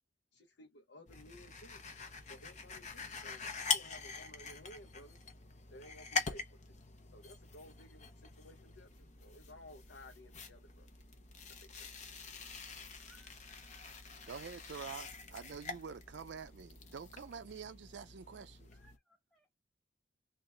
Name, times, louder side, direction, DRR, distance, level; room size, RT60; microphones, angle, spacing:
voice 1, 0.3-1.9 2.3-3.5 3.7-5.2 5.7-6.8 7.1-10.9 11.6-12.5, left 1 dB, 75° left, 0.8 m, -56 dB
sound 1, 1.1-19.0, left 5 dB, 40° left, 1.0 m, -44 dB
voice 2, 13.0-13.8 18.7-19.6, right 2 dB, 5° left, 0.7 m, -68 dB
voice 3, 14.3-18.7, right 6 dB, 70° right, 0.4 m, -47 dB
3.9 x 2.5 x 3.2 m
head